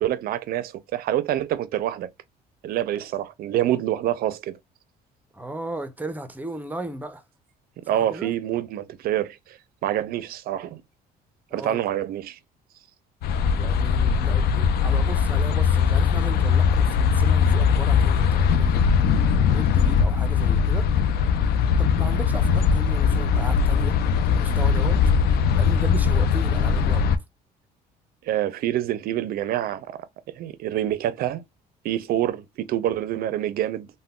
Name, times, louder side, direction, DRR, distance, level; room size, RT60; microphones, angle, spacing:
voice 1, 0.0-2.1 2.6-4.6 7.9-10.8 11.5-12.4 28.2-30.1 30.3-31.4 31.8-33.9, right 12 dB, 60° right, 0.4 m, -26 dB
voice 2, 5.3-7.2 7.8-8.3 11.5-11.8 13.5-19.1 19.5-20.9 21.8-24.0 24.3-25.0 25.5-27.1, right 1 dB, 10° right, 0.5 m, -36 dB
sound 1, 13.2-27.2, left 6 dB, 70° left, 0.4 m, -20 dB
3.6 x 2.1 x 2.2 m
cardioid pair, 110°, 17 cm